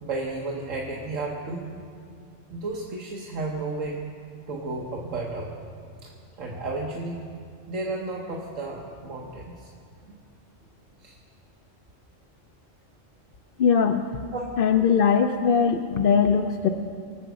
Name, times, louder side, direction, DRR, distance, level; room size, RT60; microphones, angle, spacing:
voice 1, 0.0-1.7 2.5-4.0 4.5-5.5 6.0-6.1 6.4-7.2 7.7-9.7 11.0-11.2 14.3-14.4, right 2 dB, 85° right, -1 dB, 1.6 m, -32 dB
voice 2, 13.6-14.1 14.6-16.7, left 6 dB, 55° left, 5 dB, 0.7 m, -20 dB
24.0 x 8.1 x 6.2 m, 2.3 s
omnidirectional pair, 1.3 m